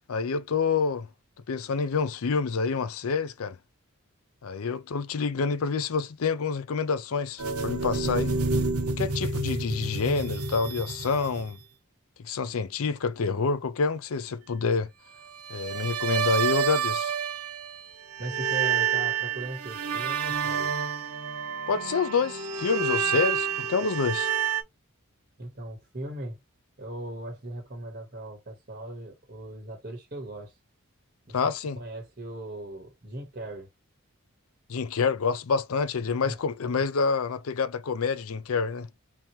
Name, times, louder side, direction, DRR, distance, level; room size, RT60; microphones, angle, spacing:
voice 1, 0.1-1.1 1.5-3.6 4.4-8.3 8.9-11.6 12.2-14.9 15.5-17.1 21.7-24.3 31.3-31.8 34.7-38.9, left 5 dB, 70° left, 0.5 m, -27 dB
sound 1, 7.4-11.6 15.4-17.8 18.1-24.6, right 6 dB, 90° right, 0.9 m, -29 dB
voice 2, 18.2-20.7 25.4-26.4 26.8-30.5 31.3-31.5 31.7-33.7 36.0-36.4, right 1 dB, 40° right, 1.2 m, -38 dB
3.7 x 2.9 x 2.9 m
head